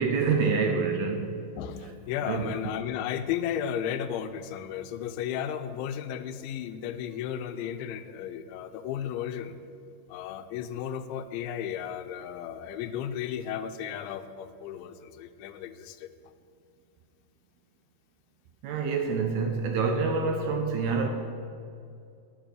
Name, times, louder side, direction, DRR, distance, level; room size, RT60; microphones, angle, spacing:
voice 1, 0.0-1.4 2.3-2.6 18.6-21.1, right 4 dB, 75° right, 4 dB, 2.4 m, -27 dB
voice 2, 1.6-9.6 10.1-16.1, left 9 dB, 90° left, 10 dB, 3.1 m, -34 dB
10.5 x 9.0 x 8.2 m, 2.4 s
omnidirectional pair, 5.3 m